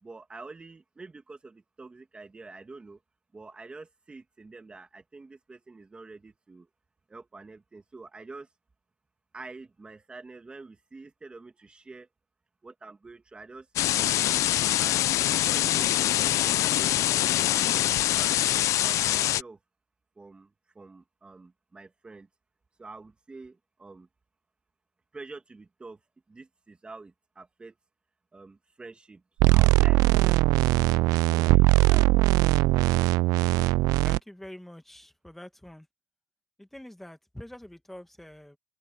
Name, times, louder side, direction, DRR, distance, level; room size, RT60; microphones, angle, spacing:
voice 1, 0.0-3.0 3.3-6.7 7.1-8.5 9.3-12.1 12.6-14.3 14.8-18.4 18.8-19.6 20.2-22.3 22.8-24.1 25.1-26.0 26.3-27.8 28.3-30.9, right 3 dB, 15° right, 2.0 m, -47 dB
sound 1, 13.8-19.4, left 14 dB, 50° left, 0.5 m, -24 dB
sound 2, 29.4-34.2, right 20 dB, 65° right, 0.3 m, -21 dB
voice 2, 34.0-35.9 36.6-38.6, left 1 dB, 5° left, 2.1 m, -45 dB
open air
cardioid pair, 130°, 7 cm